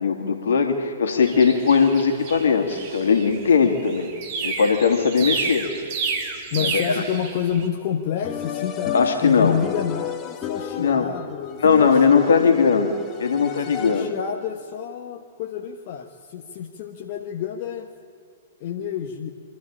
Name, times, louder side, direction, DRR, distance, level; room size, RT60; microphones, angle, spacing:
voice 1, 0.0-4.1 4.4-5.7 6.6-6.8 8.9-9.6 10.8-11.1 11.6-14.1, left 5 dB, 70° left, 5 dB, 2.3 m, -19 dB
sound 1, 1.2-7.7, right 5 dB, 45° right, 2.6 m, -31 dB
voice 2, 6.5-12.5 13.6-17.9 18.6-19.3, left 8 dB, 50° left, 3 dB, 1.2 m, -29 dB
sound 2, 8.2-14.3, left 10 dB, 30° left, 1.6 m, -32 dB
26.0 x 12.5 x 8.8 m, 2.2 s
figure-of-eight pair, 110°, 0 cm